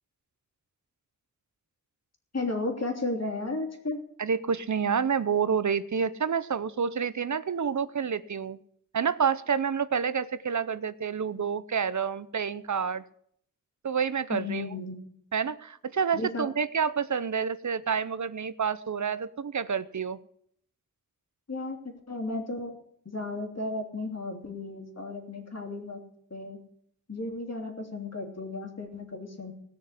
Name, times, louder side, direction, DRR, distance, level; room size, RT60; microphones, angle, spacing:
voice 1, 2.3-4.0 14.3-15.0 16.1-16.5 21.5-21.8 22.1-22.7 23.0-26.0 26.3-26.6 27.1-29.5, left 2 dB, 55° left, 2 dB, 3.1 m, -34 dB
voice 2, 4.2-8.6 8.9-13.0 13.8-14.7 15.3-20.2, right 6 dB, 70° right, 15 dB, 0.7 m, -28 dB
18.0 x 6.6 x 8.2 m, 0.68 s
wide cardioid pair, 70°, 31 cm